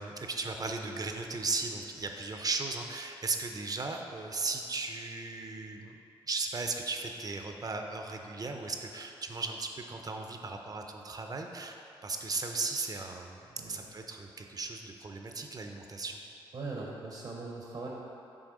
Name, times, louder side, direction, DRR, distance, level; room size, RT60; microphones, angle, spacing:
voice 1, 0.0-6.0 6.3-11.8 12.0-16.2, right 3 dB, 40° right, 4 dB, 0.6 m, -36 dB
voice 2, 16.5-17.9, right 3 dB, 60° right, -2 dB, 0.9 m, -40 dB
6.3 x 3.4 x 4.8 m, 2.9 s
cardioid pair, 60°, 10 cm